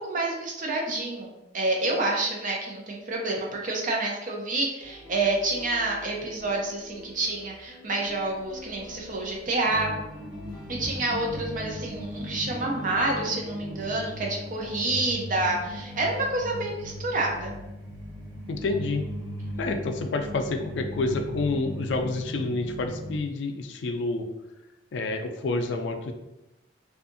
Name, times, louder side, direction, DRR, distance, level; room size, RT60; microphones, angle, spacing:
voice 1, 0.0-9.9 10.7-17.5, right 2 dB, 45° right, -1 dB, 0.6 m, -28 dB
sound 1, 4.8-16.1, left 1 dB, 25° left, 0.6 m, -48 dB
sound 2, 9.7-23.2, equal, 85° right, 0.6 m, -38 dB
voice 2, 18.5-19.1 19.6-24.3 24.9-26.1, left 3 dB, 70° left, 5 dB, 0.3 m, -28 dB
2.7 x 2.4 x 2.5 m, 0.94 s
head